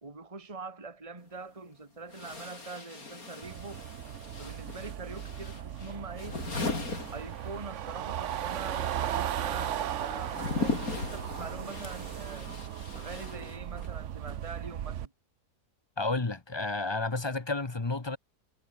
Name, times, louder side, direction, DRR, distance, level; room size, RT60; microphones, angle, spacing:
voice 1, 0.0-3.8 4.4-6.4 7.1-12.5 12.9-15.1, right 3 dB, 20° right, 2.2 m, -43 dB
sound 1, 1.2-1.3 2.1-14.0, left 3 dB, 60° left, 4.3 m, -38 dB
sound 2, 3.4-15.1, right 10 dB, 55° right, 1.0 m, -37 dB
voice 2, 16.0-18.2, left 3 dB, 20° left, 1.0 m, -31 dB
omnidirectional pair, 1.7 m